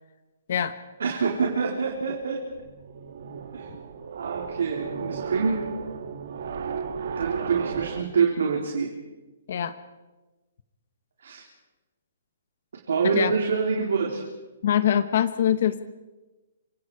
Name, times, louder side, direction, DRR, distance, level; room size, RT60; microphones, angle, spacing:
voice 1, 1.0-2.4 3.5-3.7 4.1-5.6 7.1-8.9 11.2-11.4 12.9-14.2, right 5 dB, 75° right, 0 dB, 4.0 m, -26 dB
sound 1, 2.5-8.0, right 6 dB, 55° right, 1.7 m, -34 dB
voice 2, 14.6-15.8, left 9 dB, 50° left, 11 dB, 1.2 m, -23 dB
27.0 x 23.5 x 4.9 m, 1.1 s
hypercardioid pair, 170°, 0 cm